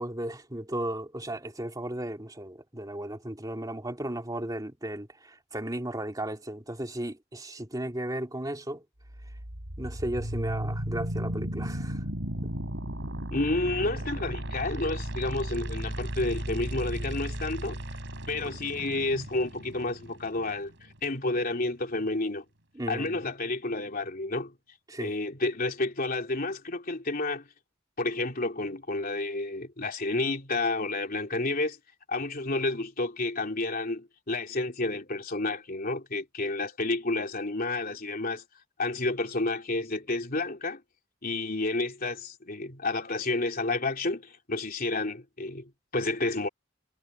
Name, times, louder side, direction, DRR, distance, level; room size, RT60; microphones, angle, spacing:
voice 1, 0.0-8.8 9.8-12.0 12.4-12.5 22.7-23.3 24.9-25.1, right 1 dB, 20° right, 2.7 m, -35 dB
sound 1, 9.0-21.0, right 1 dB, 70° right, 4.8 m, -35 dB
voice 2, 13.3-17.8 18.3-22.4 22.9-24.5 25.0-27.5 28.0-31.8 32.1-38.4 38.8-40.8 41.2-46.5, left 2 dB, 50° left, 3.3 m, -30 dB
head